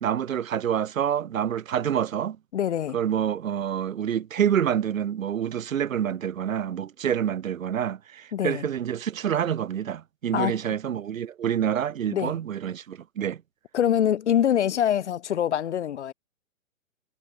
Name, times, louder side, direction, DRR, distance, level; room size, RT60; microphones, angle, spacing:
voice 1, 0.0-2.4 2.9-13.4, right 9 dB, 80° right, 1.3 m, -27 dB
voice 2, 2.5-3.0 8.3-8.7 10.3-10.6 12.1-12.4 13.7-16.1, left 10 dB, 60° left, 3.5 m, -24 dB
hypercardioid pair, 160°, 39 cm